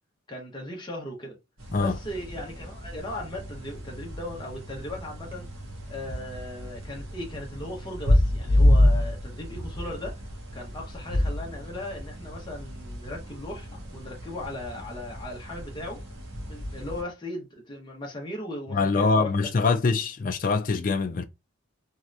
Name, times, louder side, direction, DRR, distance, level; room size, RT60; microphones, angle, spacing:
voice 1, 0.3-1.4 1.8-5.5 5.9-10.2 10.5-16.0 16.5-19.3, left 1 dB, 20° left, 0.9 m, -37 dB
sound 1, 1.6-17.0, left 1 dB, 70° right, 1.1 m, -28 dB
voice 2, 18.7-21.2, left 4 dB, 40° left, 0.4 m, -24 dB
3.2 x 2.8 x 2.5 m
head